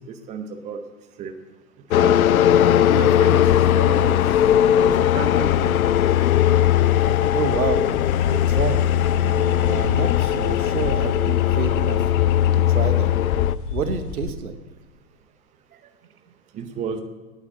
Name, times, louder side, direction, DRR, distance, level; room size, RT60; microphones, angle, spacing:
voice 1, 0.1-0.8 1.2-1.3 2.0-2.2 2.9-3.5 3.7-4.2 4.8-5.7 16.5-17.0, right 6 dB, 15° right, 7 dB, 0.7 m, -31 dB
sound 1, 1.9-13.5, left 11 dB, 65° left, 0.5 m, -19 dB
sound 2, 3.4-10.1, left 1 dB, 85° left, 2.3 m, -47 dB
sound 3, 3.5-14.3, left 7 dB, 35° left, 0.8 m, -33 dB
voice 2, 7.3-7.9 8.3-8.8 9.2-12.0 12.5-13.1 13.7-14.5, right 6 dB, 65° right, 9 dB, 1.3 m, -28 dB
9.5 x 9.1 x 7.6 m, 1.3 s
figure-of-eight pair, 100°, 46 cm